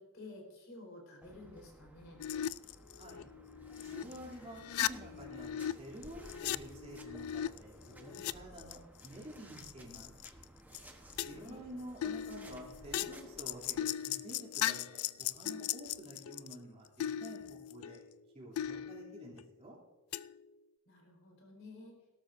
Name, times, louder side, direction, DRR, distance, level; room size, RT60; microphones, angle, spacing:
voice 1, 0.0-2.2 11.0-11.6 20.9-22.0, left 2 dB, 60° left, 1 dB, 4.3 m, -52 dB
sound 1, 1.2-13.8, right 1 dB, 10° right, 1.0 m, -56 dB
sound 2, 2.2-4.2 4.4-5.7 6.0-8.3 8.6-9.2 9.6-10.4 10.7-10.8 11.1-11.6 12.0-16.6 17.0-18.1 18.6-19.5 20.1-20.4, left 11 dB, 75° left, 0.4 m, -38 dB
voice 2, 3.8-10.1 11.1-18.0 18.3-19.8, right 1 dB, 30° right, -5 dB, 3.1 m, -50 dB
sound 3, 9.8-16.2, right 4 dB, 45° right, 4.8 m, -69 dB
18.5 x 12.5 x 2.6 m, 1.2 s
head